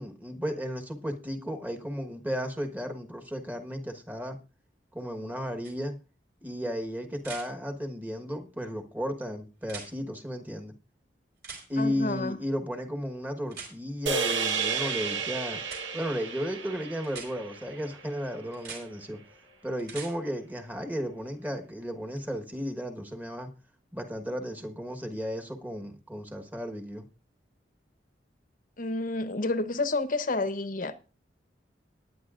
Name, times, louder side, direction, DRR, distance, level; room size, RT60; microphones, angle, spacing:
voice 1, 0.0-4.4 4.9-5.9 6.4-10.7 11.7-15.6 15.9-19.2 19.6-23.5 23.9-27.0, equal, 10° right, 1.3 m, -34 dB
sound 1, 5.6-5.7 7.2-7.5 9.6-9.9 11.4-11.6 13.5-13.7 15.6-15.8 17.0-17.3 18.5-18.8 19.8-20.1 22.2-22.3, right 5 dB, 60° right, 4.7 m, -41 dB
voice 2, 11.8-12.4 28.8-30.9, left 2 dB, 50° left, 0.9 m, -29 dB
sound 2, 14.1-18.5, right 5 dB, 80° right, 1.2 m, -32 dB
18.5 x 9.8 x 2.5 m
head